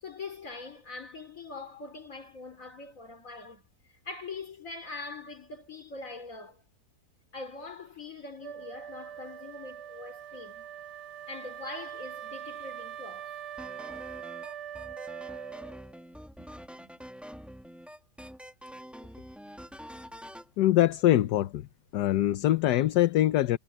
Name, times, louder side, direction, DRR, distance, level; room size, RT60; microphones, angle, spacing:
voice 1, 0.0-3.7 4.0-6.6 7.3-10.7 11.3-13.4 16.4-17.0, left 3 dB, 50° left, 3.8 m, -43 dB
Wind instrument woodwind instrument, 8.4-16.0, right 10 dB, 80° right, 1.8 m, -42 dB
sound 1, 13.6-20.5, equal, ahead, 1.5 m, -46 dB
voice 2, 20.6-21.7 21.9-23.6, left 13 dB, 75° left, 1.3 m, -23 dB
omnidirectional pair, 1.8 m